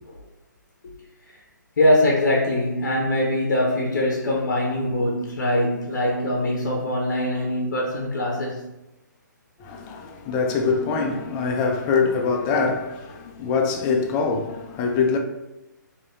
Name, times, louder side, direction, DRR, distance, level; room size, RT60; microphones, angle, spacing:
voice 1, 0.8-1.4 1.8-8.7, left 1 dB, 60° left, 0.8 m, -23 dB
voice 2, 9.6-15.2, left 5 dB, 25° left, 0.5 m, -24 dB
4.7 x 2.8 x 2.7 m
figure-of-eight pair, 135°, 10 cm